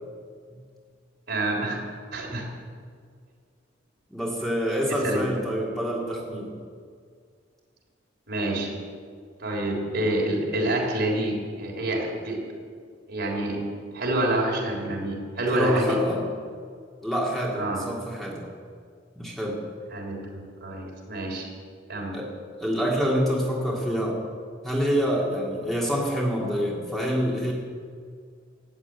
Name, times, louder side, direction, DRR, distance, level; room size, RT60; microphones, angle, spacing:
voice 1, 1.3-1.8 2.1-2.5 4.9-5.4 8.3-8.7 9.4-12.5 13.1-16.0 17.6-17.9 19.9-21.5 21.9-22.2, right 1 dB, 60° right, -2 dB, 3.8 m, -28 dB
voice 2, 4.1-6.6 15.5-16.2 17.0-18.5 19.2-19.6 22.1-22.3 22.6-24.2 24.6-27.5, equal, ahead, -4 dB, 2.1 m, -26 dB
13.5 x 8.0 x 9.2 m, 2.1 s
head